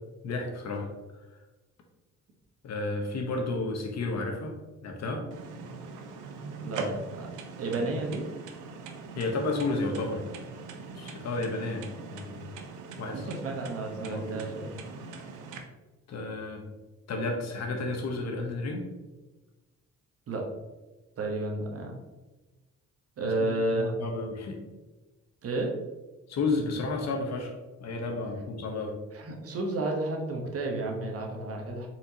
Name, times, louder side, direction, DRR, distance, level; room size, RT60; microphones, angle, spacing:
voice 1, 0.2-0.8 2.6-4.5 4.8-5.2 9.1-10.2 10.9-12.5 13.0-13.3 14.0-14.6 16.1-16.6 17.1-18.8 23.2-24.6 26.3-27.5 27.8-29.0, left 3 dB, 60° left, 2 dB, 1.0 m, -32 dB
sound 1, 5.3-15.6, right 4 dB, 80° right, 0.7 m, -41 dB
voice 2, 6.6-7.3 7.6-8.3 13.1-14.7 20.3-20.5 21.2-21.9 23.2-24.0 25.4-25.7 29.1-31.9, right 2 dB, 50° right, 1 dB, 1.0 m, -31 dB
4.4 x 4.0 x 2.8 m, 1.2 s
cardioid pair, 90°, 30 cm